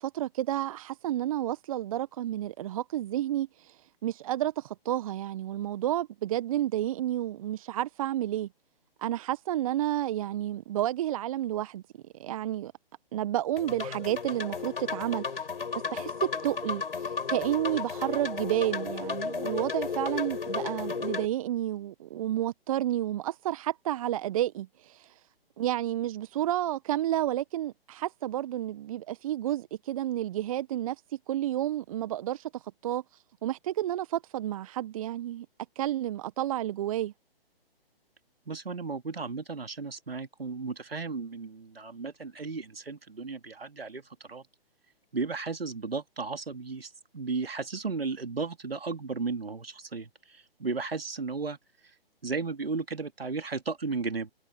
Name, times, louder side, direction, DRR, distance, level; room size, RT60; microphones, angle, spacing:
voice 1, 0.0-3.7 4.0-8.5 9.0-11.8 12.1-12.7 13.1-15.5 15.9-25.1 25.6-30.9 31.3-33.0 33.4-35.5 35.7-37.1, right 13 dB, 35° right, 1.4 m, -31 dB
sound 1, 13.6-21.3, left 5 dB, 65° left, 5.0 m, -34 dB
voice 2, 38.5-44.0 44.3-44.4 45.1-51.6 52.2-54.3, right 4 dB, 75° right, 3.1 m, -34 dB
figure-of-eight pair, 130°, 30 cm